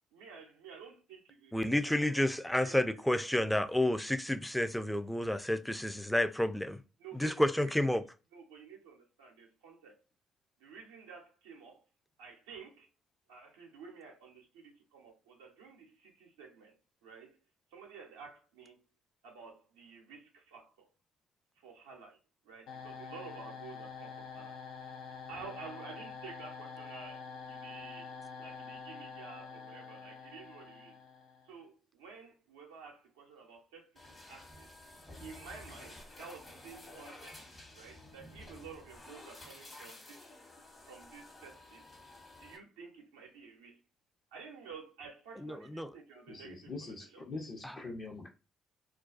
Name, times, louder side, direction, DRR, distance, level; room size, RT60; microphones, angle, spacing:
voice 1, 0.1-1.6 1.8-3.0 3.4-3.6 7.0-7.7 8.3-10.0 10.6-11.9 12.2-12.9 13.3-16.8 17.0-17.4 17.7-18.8 19.2-20.9 21.6-22.2 22.4-24.6 25.3-31.0 31.4-34.7 35.2-37.4 37.7-40.2 40.9-41.9 42.3-43.8 44.3-47.2, right 5 dB, 90° right, 0.4 m, -51 dB
voice 2, 1.5-6.8 7.1-8.0 45.4-45.9 47.6-47.7, left 1 dB, 5° left, 0.4 m, -30 dB
sound 1, 22.7-31.6, left 5 dB, 75° left, 0.4 m, -47 dB
sound 2, 34.0-42.6, left 2 dB, 40° left, 1.0 m, -52 dB
voice 3, 46.3-48.3, left 3 dB, 55° left, 0.8 m, -43 dB
2.3 x 2.2 x 2.4 m
hypercardioid pair, 50°, 0 cm